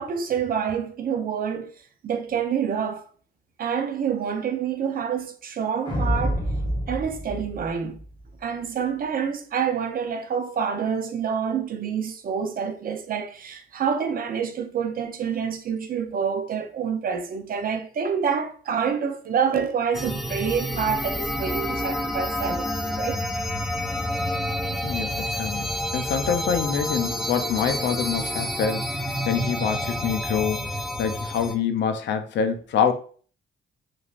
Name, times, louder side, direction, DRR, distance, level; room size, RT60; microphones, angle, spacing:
voice 1, 0.0-1.7 2.0-3.0 3.6-6.4 6.9-8.0 8.4-23.2, right 7 dB, 45° right, 0.6 m, -27 dB
sound 1, 5.9-8.3, equal, 20° left, 0.8 m, -27 dB
sound 2, 19.9-31.6, equal, ahead, 0.4 m, -29 dB
voice 2, 24.8-30.7 31.0-32.9, left 7 dB, 65° left, 0.5 m, -26 dB
3.1 x 2.5 x 2.4 m
cardioid pair, 90°, 20 cm